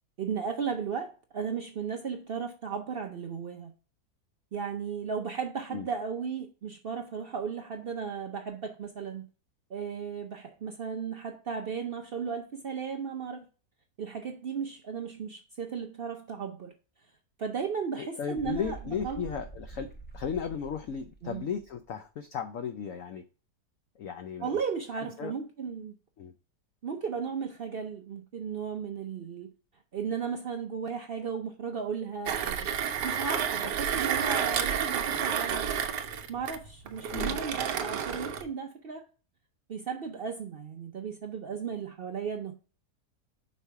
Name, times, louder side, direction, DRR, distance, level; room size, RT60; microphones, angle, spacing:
voice 1, 0.2-3.7 4.5-9.3 9.7-13.4 14.0-16.7 17.4-18.8 19.0-19.4 21.2-21.4 24.4-26.0 26.8-29.5 29.9-32.7 33.0-35.6 36.3-39.1 39.7-42.5, right 6 dB, 75° right, 0.5 m, -35 dB
voice 2, 17.9-19.9 20.1-23.2 24.0-24.6 25.0-25.3 26.2-26.3 37.1-37.4, left 7 dB, 65° left, 0.9 m, -35 dB
sound 1, 18.4-21.9, right 3 dB, 15° left, 0.4 m, -46 dB
Mechanisms, 32.3-38.5, right 8 dB, 90° right, 1.4 m, -30 dB
5.6 x 4.2 x 4.5 m
omnidirectional pair, 1.8 m